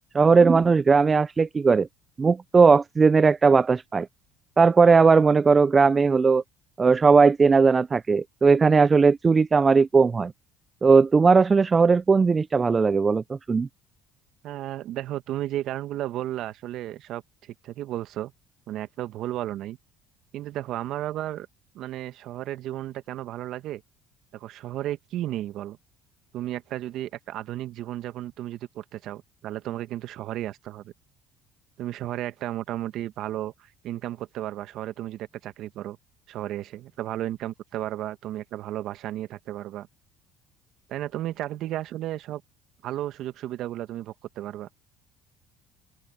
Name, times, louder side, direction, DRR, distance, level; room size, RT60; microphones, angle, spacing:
voice 1, 0.1-1.9 2.2-4.1 4.6-6.4 6.8-10.3 10.8-13.7, right 4 dB, 30° right, 0.3 m, -18 dB
voice 2, 14.4-18.3 18.7-19.8 20.3-21.5 21.7-23.8 24.3-25.8 26.3-30.9 31.8-36.0 36.3-39.9 40.9-42.4 42.8-44.7, right 13 dB, 65° right, 1.7 m, -33 dB
supercardioid pair, 75°, 0 cm